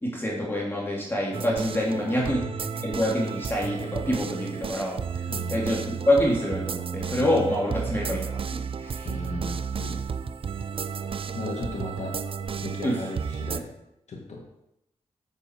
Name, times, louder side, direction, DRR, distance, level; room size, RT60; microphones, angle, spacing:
voice 1, 0.0-2.4 2.8-5.2 5.5-8.3 8.5-9.1 12.8-13.0, left 1 dB, 20° left, -4 dB, 2.3 m, -26 dB
sound 1, 1.3-13.6, right 6 dB, 50° right, 0.5 m, -32 dB
voice 2, 1.9-2.3 2.6-2.9 5.3-5.6 9.0-10.0 11.3-12.1 12.6-13.7 14.1-14.4, left 3 dB, 75° left, 0 dB, 1.6 m, -36 dB
7.1 x 6.9 x 4.4 m, 0.83 s
cardioid pair, 70°, 12 cm